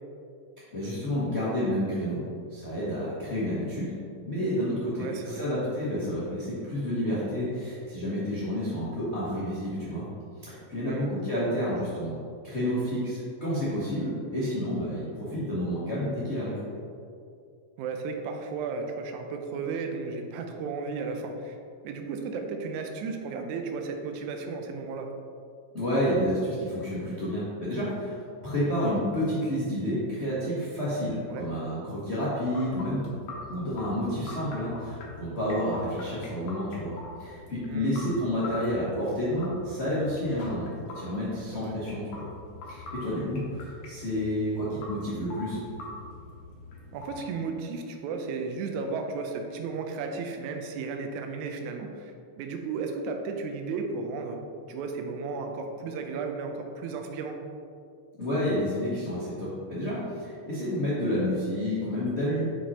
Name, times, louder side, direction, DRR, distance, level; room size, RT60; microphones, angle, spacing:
voice 1, 0.7-2.2 2.5-3.9 4.3-10.0 10.4-16.6 25.7-33.0 33.5-36.9 37.2-42.2 42.7-45.6 58.2-62.5, equal, 75° left, -9 dB, 0.6 m, -30 dB
voice 2, 5.0-5.5 10.8-11.1 17.8-21.6 21.8-25.1 31.3-31.5 37.7-37.9 41.5-41.8 46.9-54.4 54.7-57.4, right 4 dB, 80° right, 4 dB, 2.0 m, -34 dB
sound 1, 32.5-47.3, left 3 dB, 60° left, 1.5 m, -44 dB
5.9 x 5.1 x 4.2 m, 2.4 s
omnidirectional pair, 3.5 m